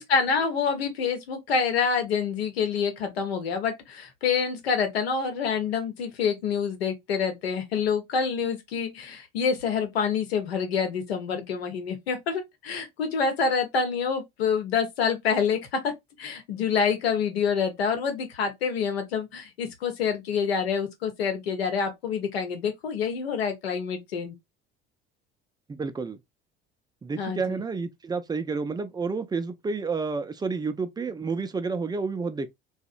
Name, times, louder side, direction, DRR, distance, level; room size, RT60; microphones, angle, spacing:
voice 1, 0.0-15.6 15.8-15.9 16.2-24.3 27.2-27.6, left 6 dB, 90° left, 0.8 m, -27 dB
voice 2, 25.7-26.2 27.0-32.6, right 4 dB, 15° right, 0.3 m, -30 dB
2.7 x 2.0 x 2.4 m
hypercardioid pair, 70°, 30 cm